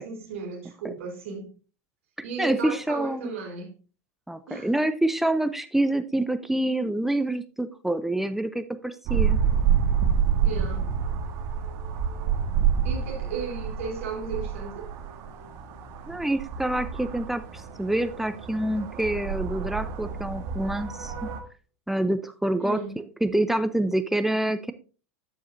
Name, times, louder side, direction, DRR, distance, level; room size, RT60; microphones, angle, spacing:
voice 1, 0.0-1.5 2.2-3.7 4.5-4.7 10.4-10.9 12.8-14.9 22.6-23.0, right 4 dB, 65° right, 3.4 m, -35 dB
voice 2, 2.4-3.3 4.3-9.4 16.1-21.3 21.9-24.7, right 1 dB, 5° right, 0.6 m, -27 dB
sound 1, 9.1-21.4, right 7 dB, 50° right, 1.6 m, -28 dB
14.5 x 4.9 x 2.6 m
figure-of-eight pair, 90°, 8 cm